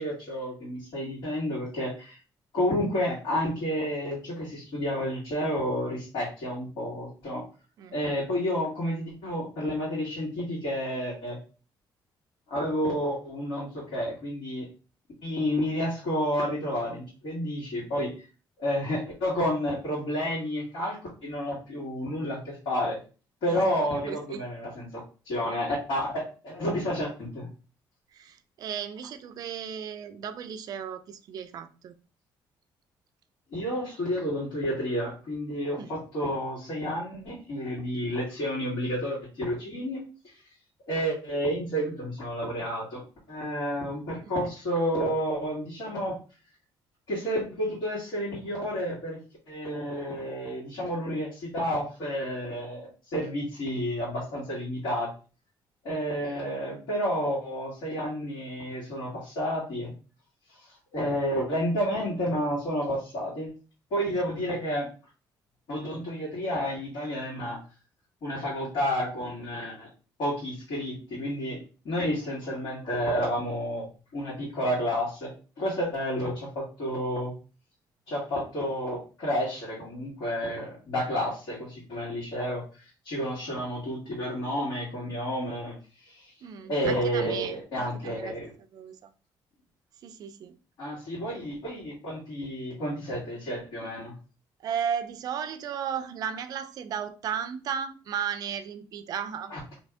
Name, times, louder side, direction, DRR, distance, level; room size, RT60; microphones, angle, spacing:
voice 1, 0.0-2.2 2.5-7.4 7.9-11.4 12.5-14.7 15.2-18.1 18.6-23.0 23.4-24.9 25.3-27.5 33.5-40.0 40.9-43.0 43.3-46.2 47.1-49.2 49.5-55.1 55.8-59.9 60.9-63.5 63.9-64.9 65.7-67.6 68.2-69.9 70.2-73.9 74.1-77.3 78.1-82.6 83.0-85.8 86.1-86.3 86.7-88.5 90.8-94.1 99.5-99.6, equal, 70° left, 1.7 m, -30 dB
voice 2, 23.5-24.4 28.1-31.9 35.7-35.9 44.2-44.3 56.2-56.4 64.1-64.2 86.4-88.3 88.7-89.0 90.0-90.6 94.6-99.6, right 8 dB, 50° right, 0.3 m, -35 dB
2.8 x 2.6 x 3.4 m
cardioid pair, 175°, 8 cm